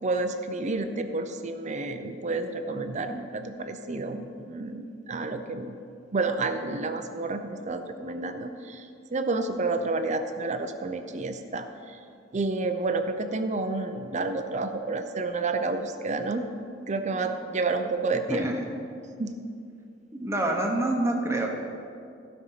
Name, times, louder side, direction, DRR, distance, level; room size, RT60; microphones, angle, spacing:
voice 1, 0.0-5.8 6.1-12.0 12.3-16.5 16.9-18.5 19.2-19.4, right 3 dB, 40° right, 7 dB, 0.6 m, -30 dB
voice 2, 20.1-21.5, right 1 dB, 15° right, 1 dB, 1.2 m, -26 dB
15.0 x 5.5 x 5.7 m, 2.5 s
head